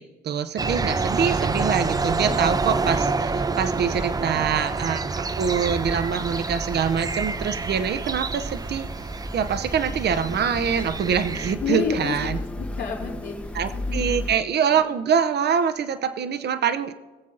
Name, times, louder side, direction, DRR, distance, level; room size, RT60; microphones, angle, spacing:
voice 1, 0.0-8.9 9.3-12.4 13.5-16.9, right 7 dB, 55° right, 12 dB, 0.8 m, -25 dB
sound 1, 0.6-11.5, right 4 dB, 20° right, 0.5 m, -27 dB
sound 2, 5.3-14.4, left 1 dB, 5° left, 0.9 m, -36 dB
voice 2, 11.6-14.2, left 5 dB, 80° left, -9 dB, 2.9 m, -31 dB
21.0 x 7.4 x 3.9 m, 1.3 s
cardioid pair, 90°, 20 cm